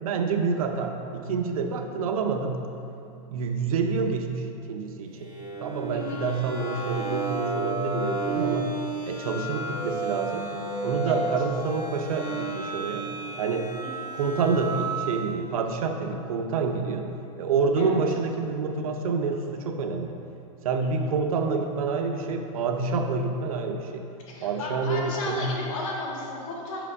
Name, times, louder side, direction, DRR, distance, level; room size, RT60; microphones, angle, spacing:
voice 1, 0.0-2.6 3.3-5.3 5.6-8.7 9.1-10.5 10.8-13.1 13.4-13.7 14.1-17.1 17.4-20.2 20.6-24.1 24.4-25.5, right 4 dB, 85° right, 5 dB, 0.7 m, -27 dB
sound 1, 5.2-15.4, right 3 dB, 25° right, 1.2 m, -32 dB
voice 2, 5.9-6.2 11.0-11.3 13.8-14.1 17.8-18.0 20.8-20.9 24.3-26.9, left 2 dB, 65° left, -3 dB, 1.6 m, -34 dB
5.9 x 4.9 x 4.8 m, 2.7 s
supercardioid pair, 145°, 18 cm